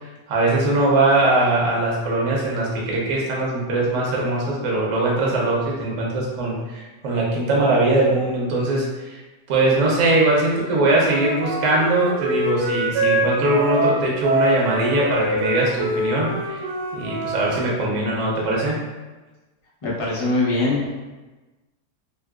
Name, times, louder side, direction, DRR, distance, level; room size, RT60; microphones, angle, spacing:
voice 1, 0.3-9.2 9.5-16.6 16.9-18.8, right 2 dB, 60° right, -3 dB, 1.1 m, -21 dB
Wind instrument woodwind instrument, 11.0-17.6, right 1 dB, 90° right, 1.2 m, -25 dB
voice 2, 19.8-20.9, left 2 dB, 50° left, -6 dB, 0.4 m, -22 dB
3.2 x 2.8 x 2.3 m, 1.2 s
omnidirectional pair, 1.7 m